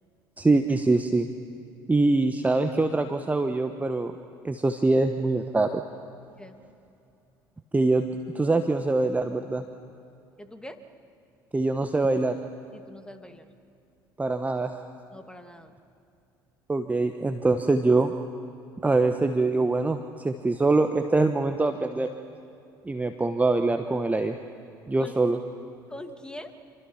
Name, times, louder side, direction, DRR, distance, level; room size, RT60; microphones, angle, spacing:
voice 1, 0.4-1.3 1.9-4.1 4.4-5.8 7.7-8.1 8.3-9.6 11.5-12.4 14.2-14.7 16.7-18.1 18.8-22.1 22.8-24.4 24.9-25.4, right 3 dB, 15° right, 6 dB, 1.2 m, -24 dB
voice 2, 10.4-10.8 12.7-13.5 15.1-15.8 25.0-25.1 25.9-26.5, left 1 dB, 5° left, 7 dB, 2.3 m, -43 dB
27.5 x 25.5 x 5.8 m, 2.6 s
figure-of-eight pair, 60°, 11 cm